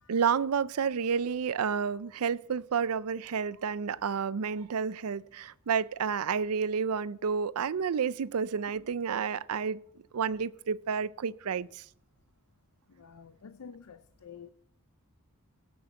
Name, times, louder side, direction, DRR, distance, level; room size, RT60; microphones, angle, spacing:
voice 1, 0.1-9.8 10.1-11.8, right 6 dB, 80° right, 0.5 m, -30 dB
voice 2, 12.9-14.5, left 6 dB, 80° left, 0.5 m, -49 dB
17.5 x 6.2 x 6.8 m
head